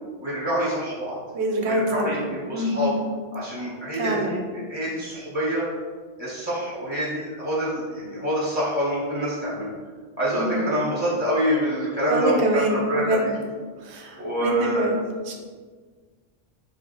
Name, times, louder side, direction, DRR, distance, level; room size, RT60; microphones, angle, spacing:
voice 1, 0.2-1.2 1.6-2.9 3.3-5.6 6.2-9.7 10.2-13.3 14.2-14.9, equal, 15° left, -8 dB, 0.7 m, -26 dB
voice 2, 1.3-2.1 2.5-2.9 4.0-4.4 10.3-10.6 12.1-13.3 13.8-15.0 15.3-15.4, right 1 dB, 70° right, 2 dB, 0.9 m, -25 dB
3.3 x 2.4 x 3.7 m, 1.5 s
omnidirectional pair, 1.2 m